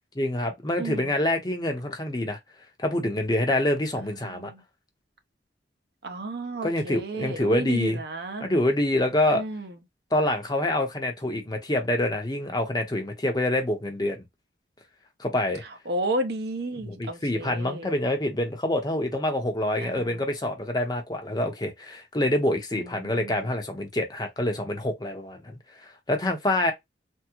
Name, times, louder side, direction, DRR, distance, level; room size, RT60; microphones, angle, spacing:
voice 1, 0.2-2.4 2.8-4.5 6.6-8.0 8.4-9.4 10.1-14.2 15.2-15.6 16.8-26.7, left 1 dB, 20° left, 0.7 m, -26 dB
voice 2, 0.8-1.1 4.2-4.6 6.0-8.5 9.3-9.8 15.9-17.9 19.8-20.2 22.7-23.5, right 2 dB, 60° right, 0.7 m, -33 dB
3.5 x 2.0 x 2.9 m
head